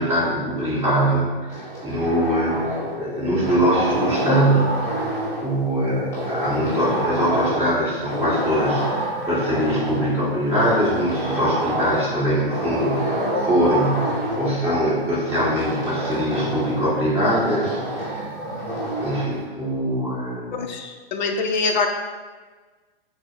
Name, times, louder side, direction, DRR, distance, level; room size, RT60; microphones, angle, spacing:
voice 1, 0.0-5.1 5.4-18.3 18.7-20.6, equal, 10° right, -10 dB, 1.4 m, -23 dB
sound 1, 1.5-3.0 3.4-5.5 6.1-7.8 8.1-10.1 10.5-12.1 12.5-14.5 15.3-16.8 17.2-19.3, right 1 dB, 10° left, 0.9 m, -27 dB
voice 2, 20.5-21.9, left 4 dB, 50° left, 4 dB, 0.4 m, -24 dB
5.8 x 2.0 x 3.4 m, 1.4 s
hypercardioid pair, 140°, 30 cm